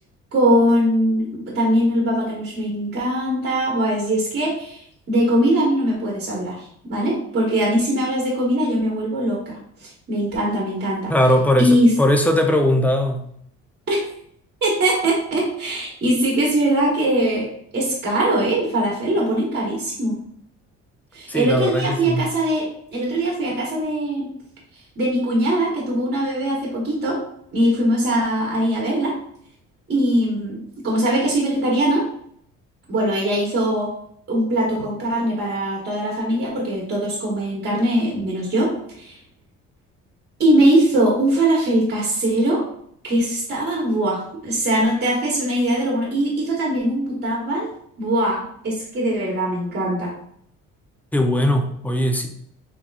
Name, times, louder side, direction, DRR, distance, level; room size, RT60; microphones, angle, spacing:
voice 1, 0.3-11.1 11.6-11.9 13.9-14.0 14.6-17.5 17.7-20.2 21.1-24.2 25.0-27.2 27.5-29.1 29.9-32.0 32.9-33.9 34.3-38.7 39.0-39.2 40.4-42.6 43.0-47.7 48.0-50.1, right 1 dB, 35° right, -3 dB, 1.1 m, -21 dB
voice 2, 11.1-13.2 21.3-22.2 51.1-52.3, equal, 5° left, 4 dB, 0.4 m, -19 dB
3.7 x 2.9 x 2.3 m, 0.66 s
cardioid pair, 100°, 30 cm